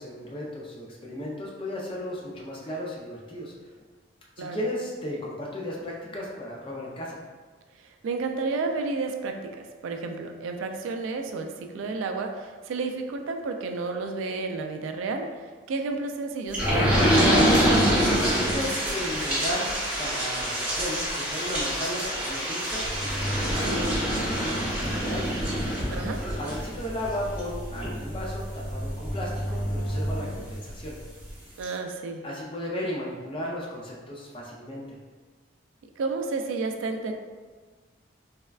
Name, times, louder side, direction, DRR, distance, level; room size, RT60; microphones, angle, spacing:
voice 1, 0.0-3.5 4.4-7.2 18.4-25.3 26.4-31.0 32.2-35.0, left 1 dB, 25° left, -3 dB, 0.4 m, -35 dB
voice 2, 8.0-15.3 15.7-17.8 25.9-26.2 31.6-32.2 36.0-37.1, right 3 dB, 80° right, 4 dB, 0.3 m, -31 dB
sound 1, 16.5-30.8 31.3-31.4 31.6-31.7, equal, 10° right, 0.8 m, -26 dB
3.4 x 2.1 x 2.3 m, 1.4 s
head